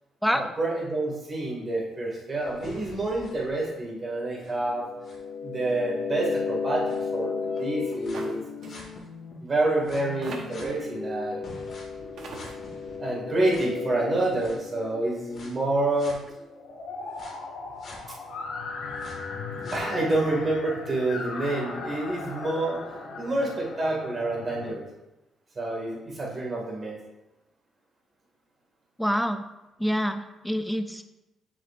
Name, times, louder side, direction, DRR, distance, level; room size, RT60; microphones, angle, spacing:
voice 1, 0.3-4.8 5.4-8.4 9.4-11.4 13.0-16.2 19.7-22.8 23.2-24.9 25.6-27.0, right 2 dB, 35° right, -2 dB, 2.2 m, -28 dB
sound 1, 2.4-9.3 9.9-15.5 16.0-16.1 17.2-17.3 17.8-18.0 18.5-20.2, left 5 dB, 55° left, 1.8 m, -35 dB
sound 2, 8.1-8.4 8.6-8.8 9.7-9.8 10.2-10.7 11.7-11.8 12.2-12.5, right 3 dB, 65° right, 1.1 m, -40 dB
sound 3, 12.0-24.7, left 3 dB, 80° left, 2.0 m, -40 dB
voice 2, 29.0-29.4 29.8-31.0, equal, ahead, 8 dB, 0.4 m, -26 dB
7.1 x 6.1 x 2.6 m, 0.99 s
cardioid pair, 90°, 0 cm